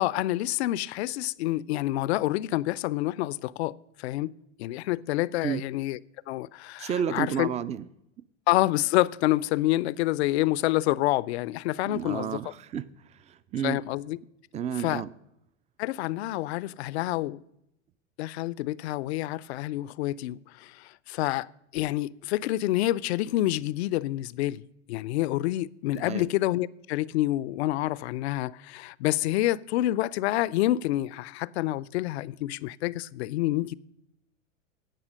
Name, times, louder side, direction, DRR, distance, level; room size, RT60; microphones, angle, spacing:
voice 1, 0.0-4.3 4.6-6.0 6.3-7.5 8.5-12.5 13.6-14.2 14.8-15.0 15.8-17.4 18.2-24.6 24.9-33.7, left 16 dB, 60° left, 0.5 m, -28 dB
voice 2, 6.8-7.8 11.9-12.9 13.3-13.8 14.5-15.1 25.9-26.3, right 8 dB, 20° right, 0.4 m, -31 dB
16.5 x 6.0 x 6.3 m
hypercardioid pair, 90°, 38 cm